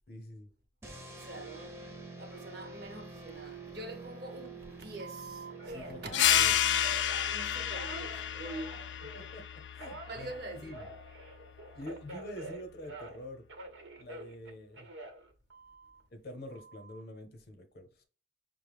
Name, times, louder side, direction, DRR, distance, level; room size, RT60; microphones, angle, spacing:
voice 1, 0.1-0.5 5.7-6.6 9.1-10.3 10.6-10.9 11.7-13.4 14.0-14.9 16.1-18.0, left 1 dB, 55° left, 0.7 m, -46 dB
sound 1, 0.8-6.7, right 3 dB, 15° right, 0.5 m, -47 dB
voice 2, 1.2-1.8 2.2-5.9 7.1-8.8 10.1-10.8, right 2 dB, 60° right, 0.8 m, -45 dB
Telephone, 5.0-9.3 9.8-13.2 13.5-16.0 16.5-17.0, right 2 dB, 85° right, 0.8 m, -47 dB
sound 2, 6.1-11.3, left 11 dB, 75° left, 0.3 m, -31 dB
5.2 x 2.0 x 3.3 m
head